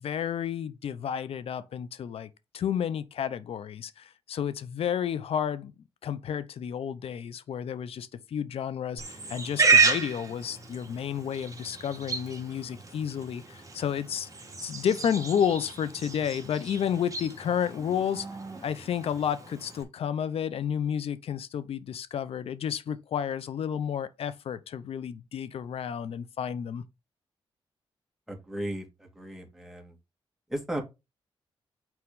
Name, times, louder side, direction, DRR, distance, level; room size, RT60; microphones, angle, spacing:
voice 1, 0.0-5.7 6.0-14.3 14.6-18.3 18.6-26.8, left 8 dB, 70° left, 0.7 m, -31 dB
Livestock farm animals working animals, 9.0-19.8, right 4 dB, 30° right, 1.9 m, -31 dB
voice 2, 28.3-29.9 30.5-30.8, right 1 dB, ahead, 2.4 m, -35 dB
6.1 x 4.5 x 3.7 m
cardioid pair, 65°, 10 cm